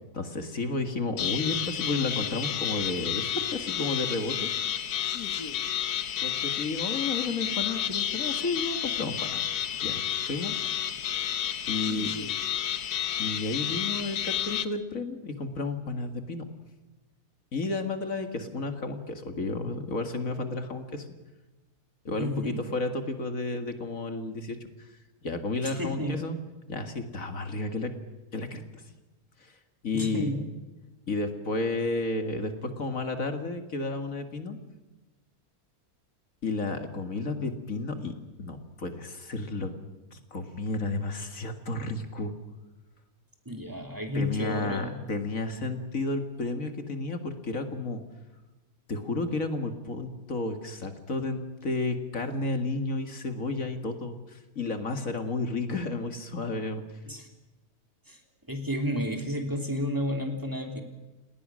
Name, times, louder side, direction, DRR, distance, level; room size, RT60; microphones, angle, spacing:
voice 1, 0.1-4.5 6.2-9.5 9.8-10.6 11.7-12.1 13.2-16.4 17.5-21.1 22.0-24.9 25.2-26.4 26.7-27.9 28.3-28.9 29.4-29.6 29.8-30.3 31.1-34.6 36.4-39.7 40.1-42.3 44.1-48.0 48.9-56.8, left 3 dB, 60° left, 7 dB, 2.3 m, -32 dB
sound 1, 1.2-14.6, left 9 dB, 90° left, 1.6 m, -31 dB
voice 2, 22.2-22.7 25.6-26.2 29.9-30.4 43.4-45.0 57.1-57.3 58.1-58.2 58.5-60.8, equal, 15° right, 3 dB, 3.2 m, -31 dB
30.0 x 19.5 x 6.3 m, 1.2 s
omnidirectional pair, 1.6 m